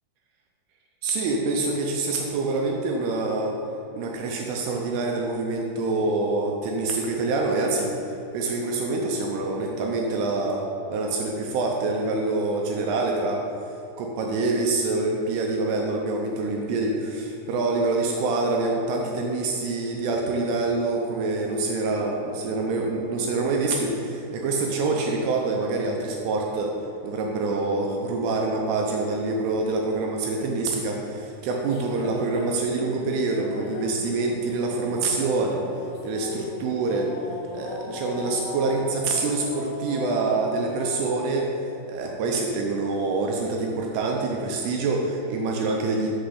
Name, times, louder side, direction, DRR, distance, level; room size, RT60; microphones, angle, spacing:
voice 1, 1.0-3.6 3.9-10.6 10.9-13.4 14.0-26.8 27.0-35.7 36.0-37.1 37.5-41.5 41.9-46.1, right 3 dB, 80° right, 0 dB, 2.4 m, -26 dB
sound 1, 31.6-41.0, left 2 dB, 70° left, 2.4 m, -38 dB
6.0 x 5.7 x 6.6 m, 2.8 s
omnidirectional pair, 5.1 m